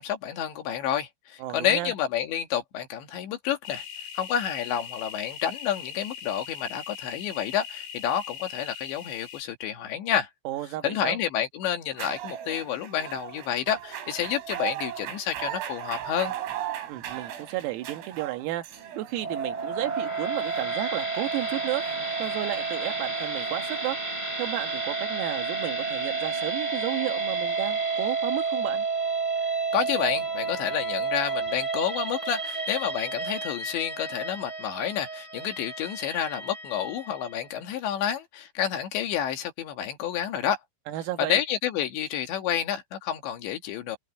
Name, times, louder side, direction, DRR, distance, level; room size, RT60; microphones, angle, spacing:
voice 1, 0.0-3.8 4.2-10.3 10.8-16.3 29.7-40.6 41.2-44.0, left 9 dB, 65° left, 3.8 m, -29 dB
voice 2, 1.4-1.9 10.5-11.2 16.9-18.7 18.9-21.9 22.2-24.0 24.4-28.9 40.9-41.4, right 15 dB, 90° right, 4.4 m, -33 dB
sound 1, 3.6-9.4, left 8 dB, 80° left, 7.6 m, -40 dB
sound 2, 11.9-23.9, right 11 dB, 75° right, 5.8 m, -38 dB
sound 3, 19.1-37.4, right 4 dB, 10° right, 2.8 m, -30 dB
omnidirectional pair, 6.0 m